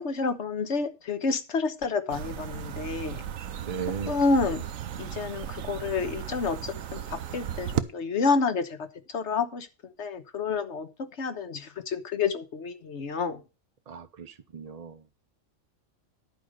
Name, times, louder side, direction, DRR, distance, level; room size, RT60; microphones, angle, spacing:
voice 1, 0.0-3.2 4.1-4.6 4.9-8.9 9.1-9.7 10.0-13.4, left 4 dB, 65° left, 10 dB, 1.4 m, -29 dB
sound 1, 2.1-7.8, right 10 dB, 90° right, 1.2 m, -35 dB
voice 2, 3.6-4.2 13.9-15.0, right 6 dB, 40° right, 8 dB, 0.6 m, -37 dB
11.0 x 5.1 x 6.6 m, 0.30 s
omnidirectional pair, 1.3 m